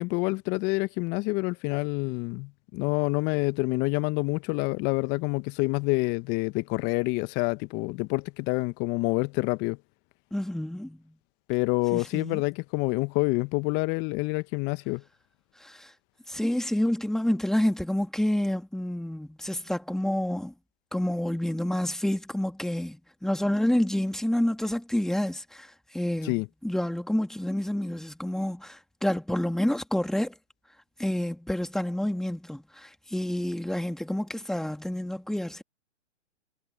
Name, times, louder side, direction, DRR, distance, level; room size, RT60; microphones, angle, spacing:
voice 1, 0.0-9.8 11.5-15.0 26.2-26.5, left 26 dB, 30° left, 1.1 m, -27 dB
voice 2, 10.3-11.1 11.9-12.4 15.6-15.9 16.3-20.5 20.9-26.3 26.6-30.3 31.0-35.6, left 1 dB, ahead, 2.3 m, -28 dB
hypercardioid pair, 125°, 36 cm